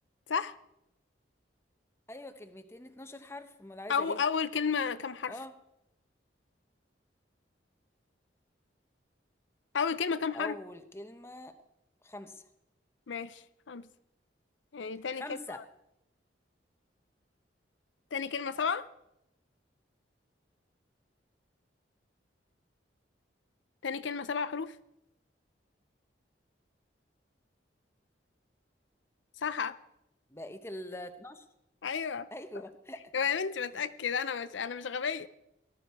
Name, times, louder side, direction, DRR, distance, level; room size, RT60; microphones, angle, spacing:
voice 1, 2.1-4.2 5.3-5.6 10.3-11.6 12.0-12.4 15.1-15.7 30.3-31.4 32.3-33.1, left 1 dB, 15° left, 8 dB, 0.9 m, -43 dB
voice 2, 3.9-5.3 9.7-10.6 13.1-13.9 14.7-15.2 15.5-15.6 18.1-18.9 23.8-24.8 29.4-29.8 31.8-32.3 33.1-35.3, left 6 dB, 85° left, 14 dB, 0.6 m, -32 dB
18.5 x 12.0 x 4.7 m, 0.84 s
head